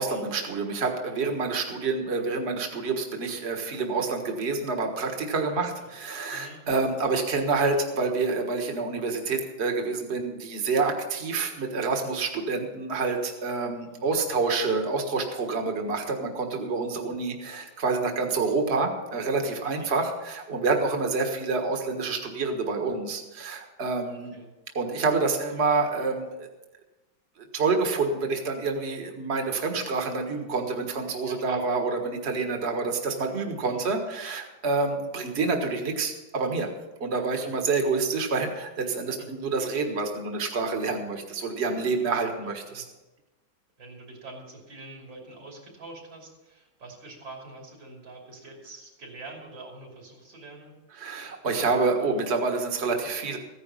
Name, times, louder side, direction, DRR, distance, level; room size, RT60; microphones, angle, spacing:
voice 1, 0.0-24.3 24.8-26.5 27.5-36.7 37.0-42.8 51.0-53.4, right 4 dB, 35° right, 3 dB, 1.7 m, -28 dB
voice 2, 6.3-6.6 13.8-14.8 19.6-19.9 24.3-24.5 31.2-31.6 33.5-33.9 37.3-37.5 39.2-39.3 42.4-42.9 43.8-50.7, right 2 dB, 70° right, 0 dB, 3.7 m, -46 dB
15.0 x 10.5 x 5.6 m, 1.1 s
omnidirectional pair, 2.1 m